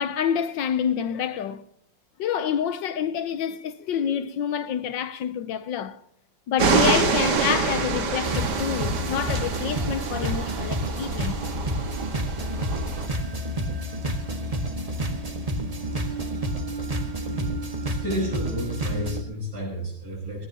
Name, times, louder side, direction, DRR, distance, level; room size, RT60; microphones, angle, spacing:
voice 1, 0.0-1.6 2.2-6.0 6.5-11.4, left 8 dB, 75° left, 1.5 m, -27 dB
sound 1, 6.6-13.1, right 4 dB, 60° right, 2.2 m, -26 dB
sound 2, 8.2-19.2, right 1 dB, 20° right, 1.6 m, -29 dB
voice 2, 17.9-20.5, equal, 40° right, 8.2 m, -31 dB
20.5 x 18.5 x 2.9 m
omnidirectional pair, 2.1 m